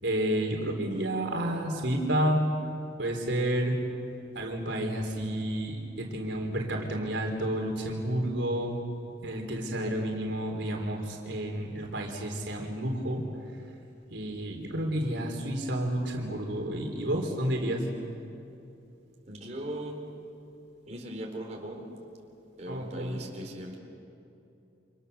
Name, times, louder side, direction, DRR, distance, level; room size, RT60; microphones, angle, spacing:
voice 1, 0.0-2.5 3.0-3.8 4.3-8.8 9.2-13.2 14.1-17.8 22.7-23.2, right 1 dB, 80° right, 1 dB, 3.6 m, -30 dB
voice 2, 19.3-20.1 20.9-21.8 22.6-23.8, right 1 dB, 40° right, 0 dB, 4.2 m, -39 dB
29.5 x 27.0 x 6.9 m, 2.8 s
head